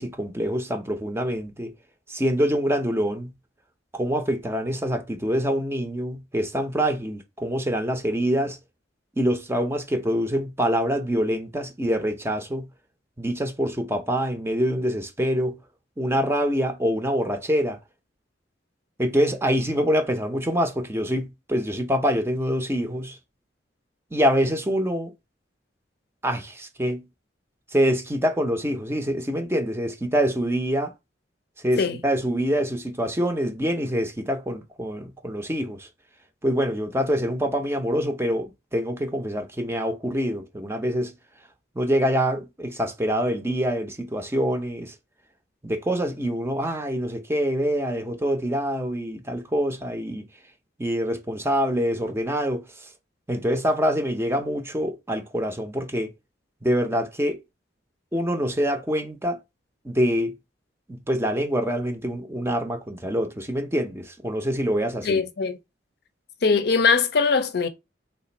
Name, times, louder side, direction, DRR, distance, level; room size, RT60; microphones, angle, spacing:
voice 1, 0.0-1.7 2.1-3.3 3.9-8.6 9.2-12.7 13.2-15.6 16.0-17.8 19.0-23.2 24.1-25.1 26.2-27.0 27.7-30.9 31.6-35.9 36.4-41.1 41.8-44.9 45.6-50.3 50.8-52.9 53.3-56.1 56.6-57.4 58.1-59.4 59.8-60.4 60.9-65.2, equal, 15° right, 0.6 m, -25 dB
voice 2, 65.0-65.6 66.4-67.7, left 5 dB, 60° left, 0.5 m, -21 dB
3.3 x 2.5 x 4.0 m
head